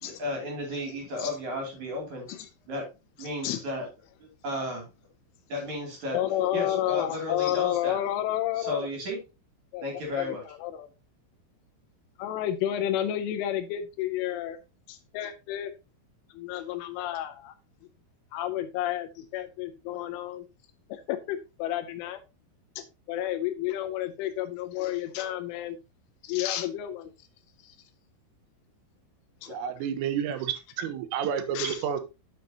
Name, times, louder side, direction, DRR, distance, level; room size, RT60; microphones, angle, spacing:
voice 1, 0.0-2.3 2.7-2.8 3.2-3.9 4.2-4.9 5.5-6.2 6.5-8.0 8.6-9.2 9.8-10.4, left 1 dB, 45° right, 3.3 m, -33 dB
voice 2, 3.2-3.6 6.1-8.9 9.7-10.9 12.2-14.6 14.9-15.7 16.3-17.5 18.3-20.5 20.9-22.2 22.8-25.8 26.2-27.1 27.6-27.8 29.4-29.6 31.5-31.8, left 12 dB, 80° left, 3.1 m, -31 dB
voice 3, 29.5-32.0, right 8 dB, 85° right, 3.7 m, -30 dB
9.9 x 7.0 x 2.8 m
omnidirectional pair, 5.8 m